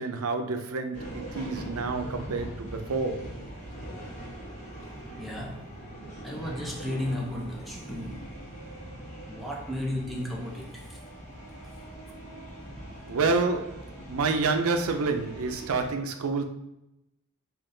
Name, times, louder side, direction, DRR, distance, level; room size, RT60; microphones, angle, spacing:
voice 1, 0.0-3.4 13.1-16.4, right 4 dB, 85° right, 0.5 m, -28 dB
sound 1, 0.9-15.9, right 1 dB, 35° left, 1.2 m, -42 dB
voice 2, 5.2-5.7 6.2-8.3 9.3-10.9, left 1 dB, ahead, 0.5 m, -34 dB
3.6 x 2.5 x 3.8 m
head